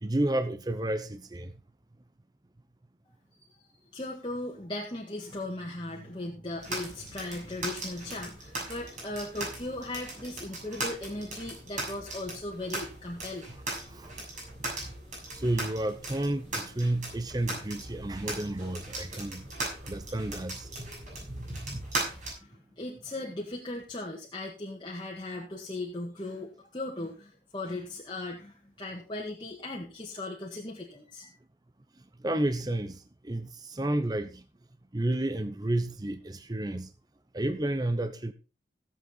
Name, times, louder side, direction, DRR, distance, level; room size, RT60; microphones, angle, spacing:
voice 1, 0.0-1.5 13.9-14.1 15.3-19.5 19.8-20.7 32.2-34.4 34.9-36.9 37.3-38.3, right 1 dB, 20° right, 0.7 m, -31 dB
voice 2, 3.9-13.5 22.3-31.3, left 2 dB, 25° left, 1.9 m, -38 dB
sound 1, 6.6-22.3, right 2 dB, 45° right, 6.8 m, -38 dB
16.5 x 7.9 x 4.1 m
head